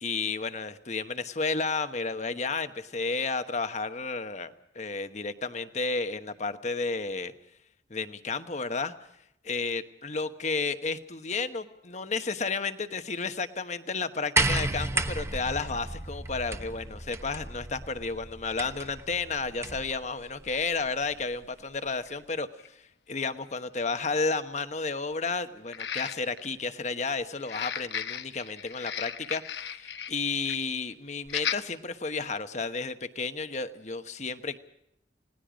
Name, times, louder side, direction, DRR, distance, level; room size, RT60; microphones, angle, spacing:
voice 1, 0.0-7.3 7.9-8.9 9.4-34.6, left 4 dB, 40° left, 10 dB, 1.2 m, -32 dB
sound 1, 14.4-20.0 21.0-21.1, right 2 dB, 15° right, 1.1 m, -32 dB
sound 2, 22.1-22.2 22.6-22.7 25.7-26.5 27.4-30.2 30.5-30.7 31.3-31.6 32.2-32.3, left 8 dB, 75° left, 1.1 m, -35 dB
29.5 x 18.5 x 5.1 m, 0.79 s
head